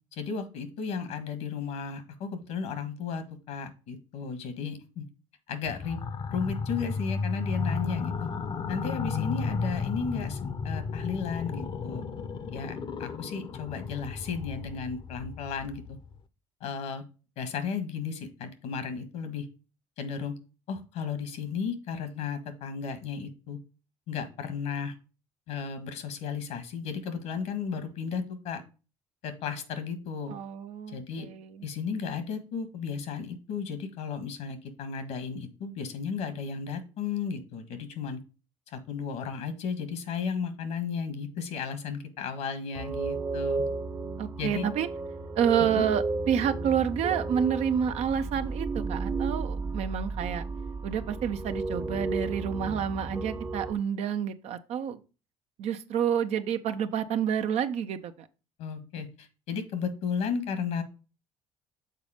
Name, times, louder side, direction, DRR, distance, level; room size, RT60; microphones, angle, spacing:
voice 1, 0.1-5.0 5.5-6.0 6.3-8.3 8.7-12.0 12.5-16.0 16.6-17.0 17.4-19.5 20.0-20.3 20.7-23.6 24.1-24.9 25.5-28.6 29.2-30.3 30.9-31.3 31.6-38.2 38.7-43.6 44.4-44.7 45.6-45.8 58.6-60.8, left 6 dB, 75° left, 1.5 m, -34 dB
sound 1, 5.7-16.2, left 5 dB, 45° left, 0.8 m, -34 dB
voice 2, 30.3-31.7 44.2-44.9 45.4-50.4 50.8-55.0 55.6-58.1, right 8 dB, 65° right, 0.7 m, -29 dB
sound 2, 42.7-53.7, right 3 dB, 20° right, 0.8 m, -33 dB
6.8 x 4.1 x 5.0 m
supercardioid pair, 75°, 12 cm